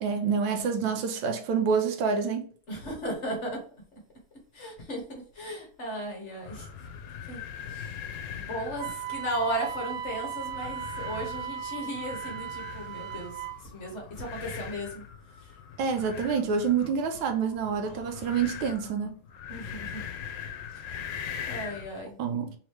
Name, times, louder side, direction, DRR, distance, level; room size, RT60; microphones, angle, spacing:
voice 1, 0.0-2.5 15.8-19.1 22.2-22.5, right 6 dB, 90° right, 1.5 m, -27 dB
voice 2, 2.7-3.6 4.5-5.0 5.4-6.6 7.3-7.4 7.7-7.9 8.3-13.3 13.7-15.0 19.5-20.0 21.5-22.1, right 1 dB, 40° left, 1.3 m, -35 dB
sound 1, 6.4-21.9, left 8 dB, 75° left, 1.3 m, -41 dB
Wind instrument woodwind instrument, 8.8-13.6, right 8 dB, 70° right, 1.1 m, -37 dB
3.7 x 2.9 x 3.1 m
omnidirectional pair, 2.1 m